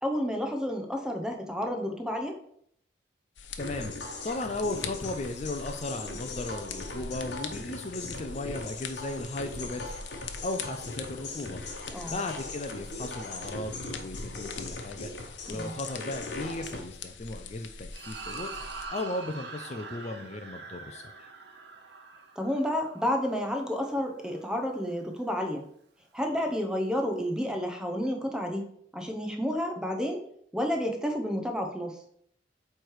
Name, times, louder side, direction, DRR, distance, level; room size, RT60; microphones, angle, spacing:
voice 1, 0.0-2.4 11.9-12.2 15.5-15.7 22.4-25.7 26.1-28.7 28.9-30.2 30.5-32.0, equal, 5° right, 3 dB, 0.8 m, -30 dB
sound 1, 3.4-18.9, left 5 dB, 85° left, 0.7 m, -43 dB
sound 2, 3.6-16.8, left 2 dB, 65° left, 1.1 m, -40 dB
voice 2, 3.6-3.9 4.2-10.0 10.4-11.6 12.1-15.1 15.5-18.5 18.9-21.0, left 2 dB, 35° left, 6 dB, 0.4 m, -36 dB
sound 3, 17.9-24.5, right 4 dB, 65° right, 0.9 m, -44 dB
8.0 x 3.3 x 4.7 m, 0.68 s
head